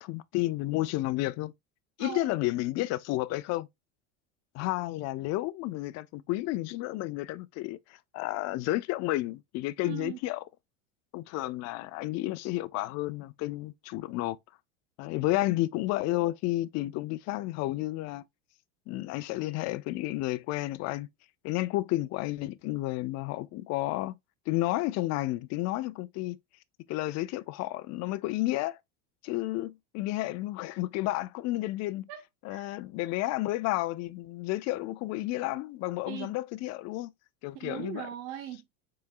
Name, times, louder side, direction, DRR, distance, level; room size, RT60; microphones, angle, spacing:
voice 1, 0.0-1.5 2.0-3.7 4.5-10.4 11.1-14.4 15.0-18.2 18.9-21.1 21.4-24.1 24.5-26.4 26.9-28.8 29.2-32.1 32.4-37.1 37.4-38.1, left 17 dB, 50° left, 0.5 m, -31 dB
voice 2, 2.0-2.3 9.8-10.2 32.1-32.2 32.5-32.6 36.1-36.3 37.5-38.8, right 11 dB, 65° right, 0.9 m, -39 dB
4.5 x 4.2 x 2.3 m
supercardioid pair, 125°, 35 cm